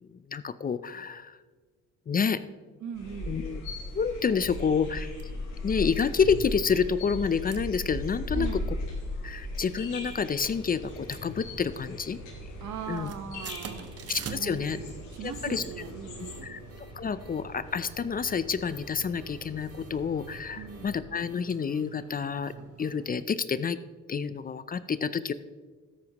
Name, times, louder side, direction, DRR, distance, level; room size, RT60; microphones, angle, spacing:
voice 1, 0.0-1.4 2.1-2.4 3.3-3.6 3.9-5.1 5.6-8.5 9.2-12.2 12.9-13.1 14.1-14.8 15.2-15.6 16.4-16.6 17.0-22.5 22.8-23.8 24.1-25.3, left 6 dB, 30° left, 14 dB, 0.5 m, -29 dB
voice 2, 2.8-3.4 8.3-8.7 12.6-13.9 14.4-16.6 20.5-21.0, right 7 dB, 75° right, 9 dB, 1.2 m, -40 dB
sound 1, 2.9-16.4, left 1 dB, 90° left, 3.8 m, -38 dB
sound 2, 3.9-4.1 4.5-4.6 4.8-5.3 5.7-6.1 6.9-7.2 7.5-7.6 8.0-8.1 8.5-8.9 9.6-10.2 10.5-11.9 12.1-12.5 12.7-23.2, right 7 dB, 50° right, 1.0 m, -47 dB
sound 3, 10.4-21.0, equal, 70° left, 2.9 m, -48 dB
13.5 x 10.5 x 3.0 m, 1.4 s
cardioid pair, 90°, 30 cm